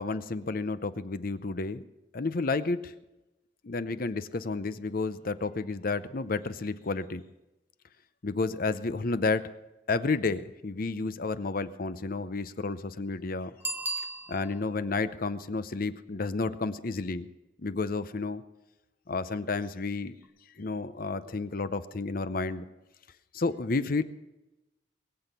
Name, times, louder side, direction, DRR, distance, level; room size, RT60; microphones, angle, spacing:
voice 1, 0.0-1.8 2.1-2.9 3.6-7.2 8.2-9.5 9.9-13.5 14.3-17.3 17.6-18.4 19.1-20.2 20.6-22.7 23.3-24.0, left 3 dB, 50° left, 13 dB, 0.7 m, -31 dB
Bicycle bell, 13.6-14.8 20.2-20.3, right 2 dB, 10° right, 1.1 m, -35 dB
21.5 x 7.9 x 6.7 m, 0.99 s
head